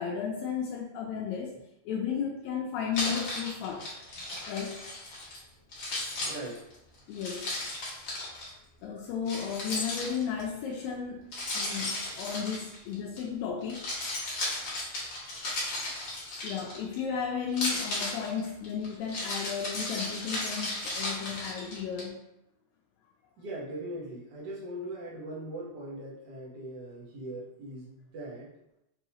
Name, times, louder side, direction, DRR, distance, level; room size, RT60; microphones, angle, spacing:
voice 1, 0.0-1.6 1.9-3.9 4.5-4.9 7.1-7.5 8.8-11.3 11.5-13.9 16.4-22.3, left 7 dB, 80° left, -1 dB, 1.7 m, -34 dB
Keys jangling, 2.9-5.4 5.7-8.5 9.3-10.5 11.3-13.2 13.6-17.0 17.5-22.0, left 2 dB, 55° left, 1.3 m, -35 dB
voice 2, 6.2-6.6 23.4-28.5, right 1 dB, 65° right, -5 dB, 1.0 m, -40 dB
5.4 x 2.8 x 2.8 m, 0.85 s
omnidirectional pair, 3.5 m